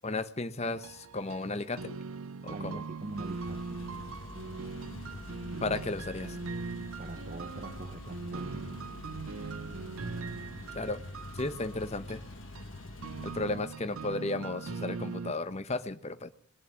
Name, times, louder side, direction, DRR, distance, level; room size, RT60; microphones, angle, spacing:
voice 1, 0.0-2.0 2.4-2.8 5.6-6.4 10.7-11.0 11.3-12.2 13.2-16.3, left 2 dB, 30° left, 1.0 m, -34 dB
sound 1, 0.6-15.3, right 4 dB, 75° right, 0.6 m, -41 dB
voice 2, 2.5-3.8 7.0-8.7, right 2 dB, 40° right, 0.6 m, -44 dB
sound 2, 3.0-13.8, left 2 dB, 65° left, 1.4 m, -45 dB
21.5 x 7.5 x 8.7 m
head